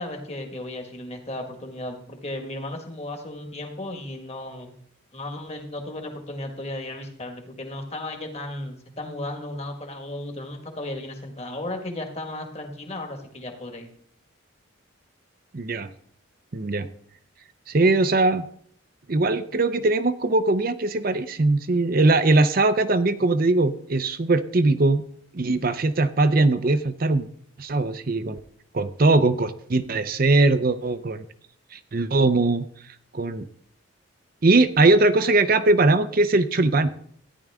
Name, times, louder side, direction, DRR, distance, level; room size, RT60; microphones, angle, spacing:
voice 1, 0.0-4.7 5.1-13.9, left 1 dB, 30° left, 4 dB, 1.7 m, -35 dB
voice 2, 15.5-15.9 16.5-16.9 17.7-18.4 19.1-25.0 25.3-27.3 27.6-28.4 28.7-31.2 31.7-32.6 33.1-33.5 34.4-36.9, right 2 dB, 45° right, 11 dB, 0.6 m, -20 dB
14.0 x 10.0 x 3.6 m, 0.62 s
head